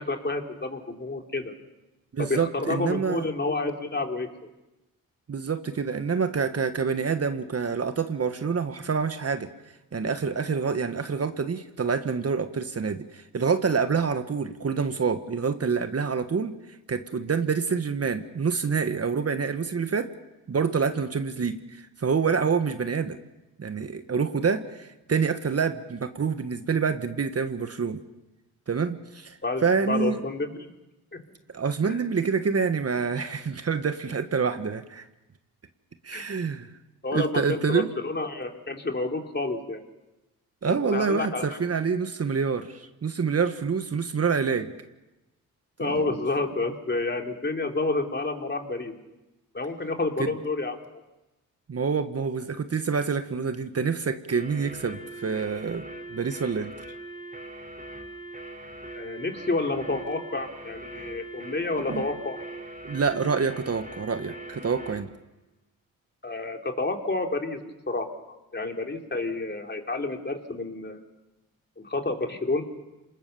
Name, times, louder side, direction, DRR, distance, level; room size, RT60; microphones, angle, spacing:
voice 1, 0.0-1.5 2.2-4.3 29.4-30.7 31.1-31.2 31.8-32.0 36.1-36.3 37.0-39.8 40.7-41.5 45.8-48.9 49.5-50.8 59.0-62.4 66.2-68.1 68.5-71.0 71.8-72.6, left 2 dB, 30° left, 3 dB, 3.4 m, -29 dB
voice 2, 2.1-3.3 5.3-9.5 9.9-16.6 16.9-20.1 20.5-23.2 23.6-28.0 28.7-30.2 31.5-35.1 36.0-36.7 37.1-37.9 40.6-44.7 45.8-46.1 50.2-50.3 51.7-56.7 61.9-62.0 62.8-65.1, right 5 dB, 40° right, 9 dB, 1.5 m, -27 dB
sound 1, 54.3-65.1, right 2 dB, 20° right, 5.1 m, -41 dB
26.5 x 20.5 x 7.0 m, 1.0 s
supercardioid pair, 60°, 37 cm